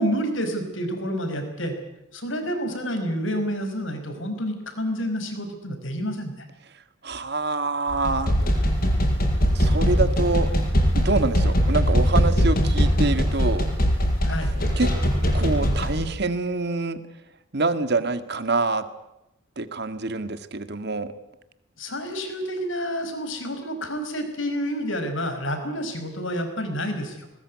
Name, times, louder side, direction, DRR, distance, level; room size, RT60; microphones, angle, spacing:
voice 1, 0.0-1.8 2.1-6.3 14.2-14.6 21.8-27.3, equal, 70° left, 7 dB, 5.3 m, -29 dB
voice 2, 7.0-8.3 9.5-10.5 11.0-13.7 14.8-14.9 15.3-17.0 17.5-18.8 19.6-21.1, right 3 dB, 55° right, 10 dB, 1.8 m, -26 dB
sound 1, 7.9-16.1, equal, 45° left, 6.2 m, -21 dB
21.0 x 20.5 x 9.6 m, 0.90 s
head